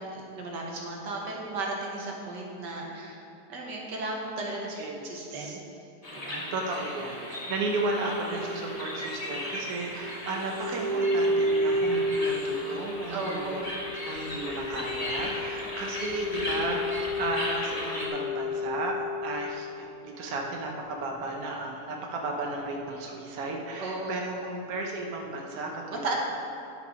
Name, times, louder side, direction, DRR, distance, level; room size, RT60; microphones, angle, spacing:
voice 1, 0.0-4.8 5.0-5.6 6.1-6.5 13.1-13.7 23.8-24.2 25.9-26.2, right 2 dB, 85° right, -1 dB, 2.0 m, -35 dB
voice 2, 4.7-5.6 6.5-13.6 14.1-26.2, right 2 dB, 60° right, 0 dB, 1.3 m, -34 dB
sound 1, 6.0-18.1, left 1 dB, 25° left, 1.3 m, -37 dB
sound 2, 8.0-19.9 20.3-20.4, left 1 dB, 80° left, 1.8 m, -32 dB
9.6 x 6.6 x 5.1 m, 2.8 s
omnidirectional pair, 1.8 m